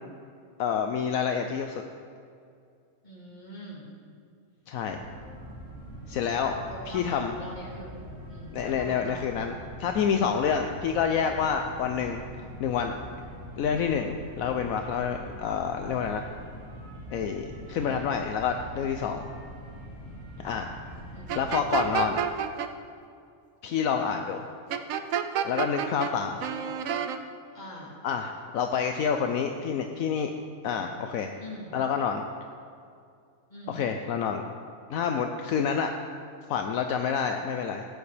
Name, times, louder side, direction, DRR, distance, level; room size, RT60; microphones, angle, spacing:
voice 1, 0.6-1.8 4.7-5.0 6.1-6.6 6.9-7.3 8.5-9.5 9.8-12.2 12.6-13.1 13.6-16.3 17.1-19.3 20.4-20.7 21.3-22.2 23.6-24.4 25.4-26.4 28.0-30.3 30.6-31.3 31.7-32.2 33.7-34.4 34.9-35.9 36.5-37.8, left 7 dB, 75° left, 5 dB, 1.0 m, -28 dB
voice 2, 3.0-3.9 6.7-9.2 17.8-18.2 20.4-20.6 21.1-21.4 26.3-26.8 27.5-27.9 31.4-31.7 33.5-33.8, left 1 dB, 30° left, -5 dB, 2.6 m, -44 dB
sound 1, 4.9-22.2, equal, 55° right, 2.3 m, -43 dB
sound 2, 21.3-22.7 24.7-26.1 26.4-27.2, right 8 dB, 75° right, 1.0 m, -29 dB
17.0 x 9.5 x 3.4 m, 2.3 s
omnidirectional pair, 1.5 m